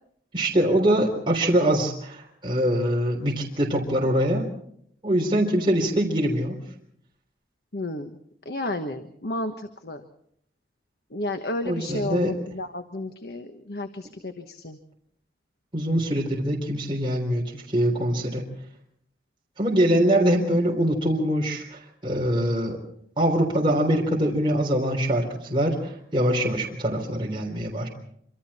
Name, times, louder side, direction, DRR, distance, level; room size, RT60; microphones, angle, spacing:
voice 1, 0.3-4.5 5.0-6.6 11.7-12.3 15.7-18.5 19.6-22.8 23.2-27.9, right 1 dB, 25° right, -1 dB, 3.6 m, -23 dB
voice 2, 7.7-8.2 8.4-10.0 11.1-14.8, left 2 dB, 65° left, 7 dB, 1.3 m, -32 dB
26.0 x 26.0 x 4.3 m, 0.69 s
head